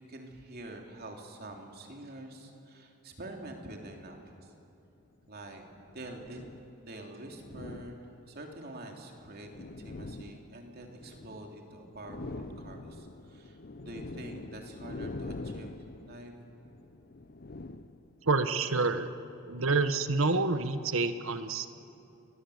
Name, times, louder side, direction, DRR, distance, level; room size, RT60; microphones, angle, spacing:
voice 1, 0.1-4.5 5.3-5.6 5.9-6.5 6.8-16.4, right 1 dB, 45° right, 2 dB, 3.0 m, -46 dB
sound 1, 4.1-4.3 5.3-6.8 7.3-8.5 9.1-11.6 11.8-18.4, left 2 dB, 45° left, 0.7 m, -44 dB
voice 2, 18.2-19.1 19.5-21.7, right 3 dB, 65° right, 11 dB, 1.2 m, -28 dB
28.0 x 21.5 x 7.9 m, 2.7 s
head